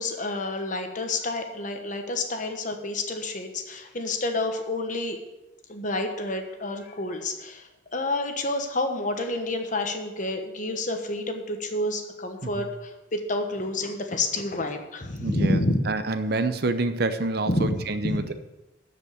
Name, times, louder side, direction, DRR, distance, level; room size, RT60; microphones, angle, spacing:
voice 1, 0.0-5.2 5.7-15.9 17.5-18.2, left 2 dB, 40° left, 5 dB, 1.2 m, -29 dB
voice 2, 15.2-18.3, right 3 dB, 55° right, 11 dB, 0.7 m, -27 dB
12.5 x 5.3 x 7.1 m, 1.0 s
head